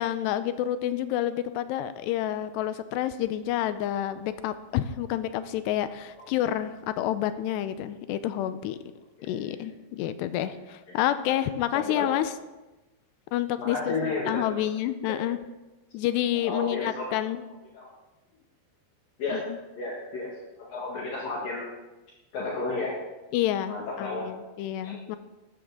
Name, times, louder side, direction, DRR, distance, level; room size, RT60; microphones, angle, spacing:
voice 1, 0.0-8.8 9.2-12.3 13.3-14.0 14.3-15.4 15.9-17.4 19.3-19.6 23.3-25.2, left 12 dB, 85° left, 11 dB, 2.7 m, -29 dB
voice 2, 11.7-12.1 13.6-14.3 15.1-15.2 16.3-17.2 17.7-17.9 19.2-19.4 19.8-21.7 22.3-23.0 23.7-24.3 24.8-25.0, left 3 dB, 60° left, -4 dB, 3.2 m, -32 dB
15.0 x 13.5 x 3.7 m, 1.1 s
omnidirectional pair, 5.1 m